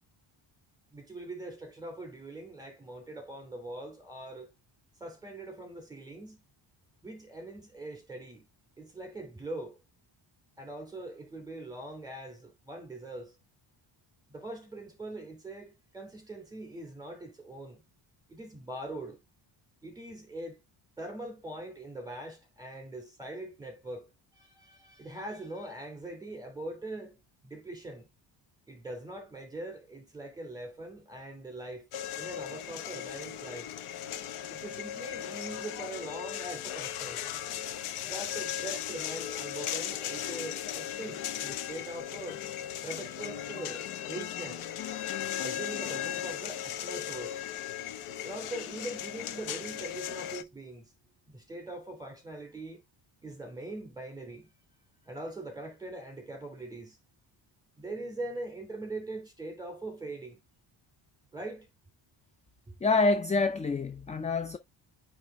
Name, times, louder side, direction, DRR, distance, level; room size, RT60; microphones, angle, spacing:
voice 1, 0.9-4.5 5.0-6.4 7.0-8.4 8.8-9.8 10.6-13.3 14.3-17.8 18.3-19.2 19.8-20.6 21.0-24.1 24.3-27.2 27.4-28.1 28.7-31.9 32.2-33.7 34.5-37.2 38.0-42.4 42.8-44.7 45.4-47.4 48.2-50.9 51.3-52.8 53.2-54.5 55.1-57.0 57.8-60.4 61.3-61.7, right 2 dB, 10° right, 2.6 m, -42 dB
sound 1, 31.9-50.4, left 10 dB, 90° left, 1.1 m, -37 dB
voice 2, 62.8-64.6, left 3 dB, 15° left, 0.3 m, -26 dB
9.0 x 3.3 x 3.4 m
cardioid pair, 160°, 48 cm